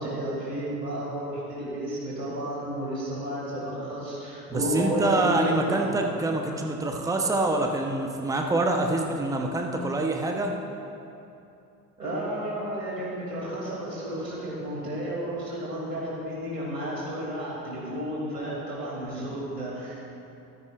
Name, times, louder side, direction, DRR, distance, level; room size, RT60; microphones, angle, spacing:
voice 1, 0.0-5.9 12.0-20.1, right 1 dB, 85° right, -6 dB, 3.0 m, -32 dB
voice 2, 4.5-10.5, right 2 dB, 5° right, 2 dB, 0.9 m, -26 dB
15.0 x 13.5 x 2.5 m, 2.7 s
figure-of-eight pair, 60°, 47 cm